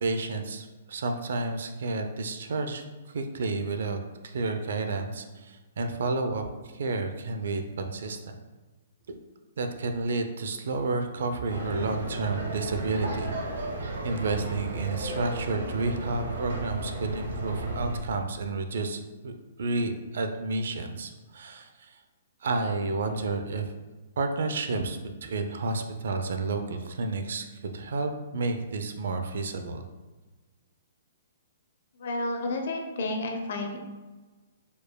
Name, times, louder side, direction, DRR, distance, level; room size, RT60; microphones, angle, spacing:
voice 1, 0.0-4.0 4.2-6.5 6.7-8.4 9.1-9.2 9.6-13.3 14.0-19.3 19.6-22.0 22.4-23.7 24.2-29.8, right 3 dB, 60° right, 6 dB, 0.5 m, -31 dB
sound 1, 11.5-18.0, right 2 dB, 80° right, 1.2 m, -34 dB
voice 2, 32.0-33.8, left 2 dB, 50° left, 3 dB, 0.7 m, -31 dB
4.8 x 4.6 x 2.2 m, 1.3 s
hypercardioid pair, 180°, 0 cm